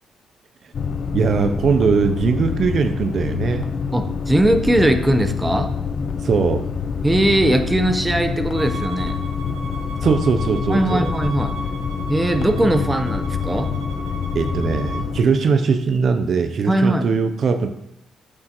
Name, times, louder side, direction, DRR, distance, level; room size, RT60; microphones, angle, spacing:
sound 1, 0.7-15.2, left 6 dB, 50° left, 0.5 m, -26 dB
voice 1, 1.1-3.7 6.2-6.7 10.0-11.1 14.3-17.7, right 5 dB, 55° right, 8 dB, 0.5 m, -20 dB
voice 2, 3.9-5.7 7.0-9.2 10.7-11.5 12.1-13.8 16.7-17.1, right 1 dB, 10° right, 7 dB, 0.8 m, -19 dB
Bowed string instrument, 8.5-15.1, right 2 dB, 75° right, 1.1 m, -35 dB
8.6 x 6.5 x 3.0 m, 0.79 s
cardioid pair, 90°, 0 cm